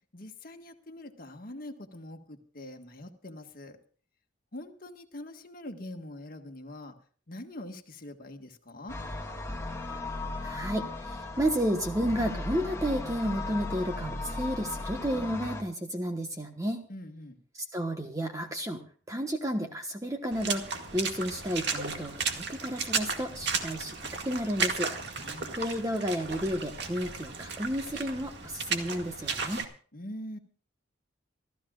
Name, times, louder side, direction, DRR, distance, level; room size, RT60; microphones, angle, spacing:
voice 1, 0.1-3.8 4.5-7.0 7.3-9.0 16.9-17.4 25.1-25.6 29.9-30.4, left 1 dB, 45° left, 5 dB, 1.7 m, -43 dB
sound 1, 8.9-15.6, left 2 dB, 15° left, 1.6 m, -36 dB
voice 2, 10.4-16.8 17.5-18.8 19.1-24.9 25.5-29.7, equal, 15° right, 3 dB, 1.2 m, -32 dB
Water / Splash splatter, 20.3-29.6, right 5 dB, 60° right, 2.0 m, -34 dB
28.0 x 14.0 x 2.4 m, 0.43 s
head